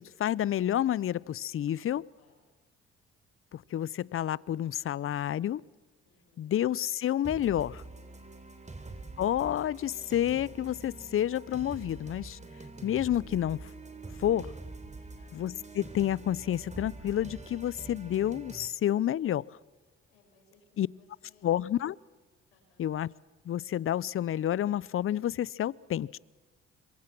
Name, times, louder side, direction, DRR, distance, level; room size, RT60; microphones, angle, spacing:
voice 1, 0.0-2.0 3.5-5.6 6.4-7.8 9.2-12.4 12.8-13.6 14.2-14.5 15.3-19.4 20.8-20.9 21.4-22.0 22.8-23.1 23.5-26.2, left 11 dB, 45° left, 24 dB, 0.6 m, -29 dB
voice 2, 2.1-2.5 6.0-6.5 8.5-8.9 14.9-15.4 20.1-21.5 22.5-22.8, left 4 dB, 90° left, 1 dB, 6.3 m, -67 dB
sound 1, 7.2-18.7, right 3 dB, 25° right, 3.4 m, -45 dB
26.5 x 22.5 x 6.1 m, 1.3 s
hypercardioid pair, 50°, 30 cm